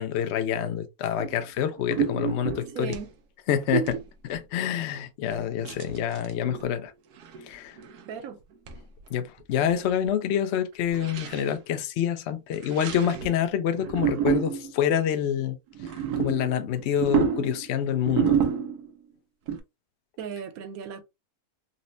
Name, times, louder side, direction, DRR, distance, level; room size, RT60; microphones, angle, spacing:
voice 1, 0.0-3.0 3.5-4.0 4.3-6.9 7.5-7.8 9.1-15.6 16.2-18.4, left 9 dB, 65° left, 0.7 m, -27 dB
sound 1, 1.2-1.4 1.8-3.1 3.6-4.0 4.3-4.4 5.6-6.7 7.2-7.5 7.8-8.1 8.7-8.8 9.1-9.2 9.4-9.8 10.1-10.2 10.9-11.5 12.5-13.4 13.7-14.8 15.7-19.0 19.5-19.6, right 7 dB, 90° right, 1.3 m, -29 dB
voice 2, 2.7-3.1 3.7-4.0 8.1-8.4 20.2-21.0, right 8 dB, 70° right, 1.0 m, -32 dB
4.1 x 2.0 x 2.6 m
omnidirectional pair, 1.6 m